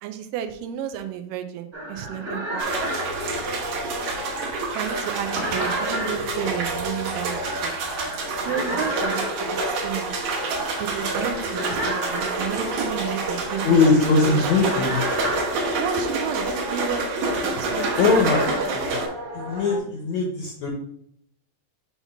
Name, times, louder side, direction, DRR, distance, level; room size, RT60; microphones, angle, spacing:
voice 1, 0.0-2.7 4.7-7.7 8.5-10.1 10.8-14.5 15.8-18.2, right 10 dB, 80° right, 8 dB, 2.1 m, -32 dB
sound 1, 1.7-19.8, right 1 dB, 30° right, 1.1 m, -32 dB
sound 2, 2.6-19.1, right 3 dB, 60° right, 2.3 m, -28 dB
voice 2, 13.6-15.0 18.0-18.4 18.7-19.0 19.3-20.7, left 4 dB, 75° left, 1 dB, 1.6 m, -20 dB
6.8 x 2.9 x 5.7 m, 0.71 s
omnidirectional pair, 4.1 m